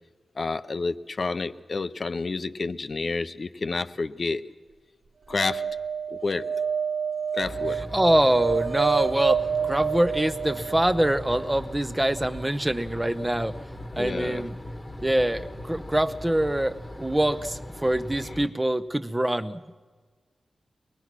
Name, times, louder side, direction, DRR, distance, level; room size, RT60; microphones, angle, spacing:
voice 1, 0.4-4.4 5.3-5.7 6.1-6.4 7.3-7.8 14.0-14.4, left 3 dB, 45° left, 11 dB, 0.6 m, -29 dB
sound 1, 5.3-11.5 13.8-13.9 14.0-14.1, right 7 dB, 55° right, 0.5 m, -29 dB
sound 2, 7.4-18.5, left 1 dB, 15° left, 1.2 m, -39 dB
voice 2, 7.9-13.5 13.9-14.5 15.0-19.7, right 1 dB, 10° right, 11 dB, 0.7 m, -24 dB
24.0 x 20.0 x 6.0 m, 1.4 s
wide cardioid pair, 130°, 0 cm